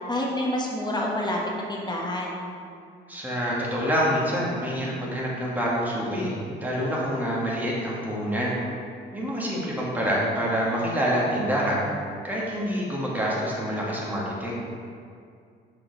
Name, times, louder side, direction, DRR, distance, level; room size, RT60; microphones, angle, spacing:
voice 1, 0.1-2.4, left 1 dB, 20° left, -2 dB, 1.3 m, -28 dB
voice 2, 3.1-8.5 9.1-11.8 12.2-14.6, equal, 10° right, -5 dB, 1.6 m, -26 dB
5.8 x 5.1 x 3.9 m, 2.3 s
cardioid pair, 90°, 20 cm